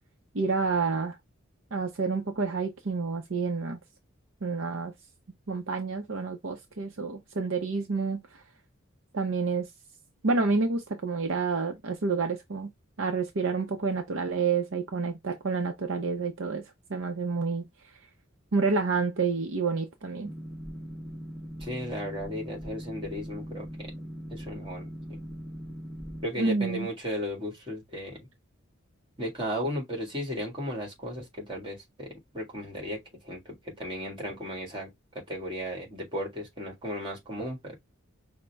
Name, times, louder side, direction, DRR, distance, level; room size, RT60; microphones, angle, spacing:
voice 1, 0.3-1.2 1.7-3.8 4.4-4.9 5.5-8.2 9.1-9.7 10.2-12.7 13.0-16.6 16.9-17.6 18.5-20.3 26.4-26.9, right 4 dB, 60° right, 0.6 m, -29 dB
Boat Water vehicle, 20.2-26.3, equal, 5° left, 0.6 m, -40 dB
voice 2, 21.6-23.9 24.3-25.2 26.2-28.3 29.2-34.9 35.1-37.8, equal, 25° right, 1.7 m, -35 dB
5.2 x 2.1 x 3.3 m
head